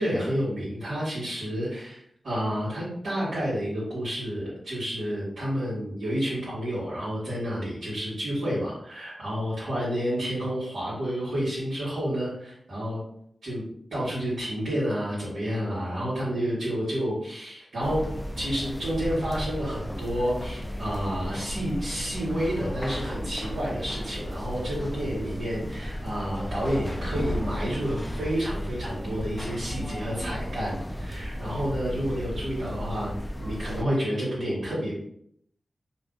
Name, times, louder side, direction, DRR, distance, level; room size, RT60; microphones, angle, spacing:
voice 1, 0.0-13.0 13.4-13.6 13.9-18.0 18.4-33.1 33.4-34.9, equal, 80° right, -10 dB, 1.3 m, -30 dB
sound 1, 17.8-33.8, equal, 10° left, 0.3 m, -34 dB
2.5 x 2.4 x 3.7 m, 0.69 s
cardioid pair, 65°, 0 cm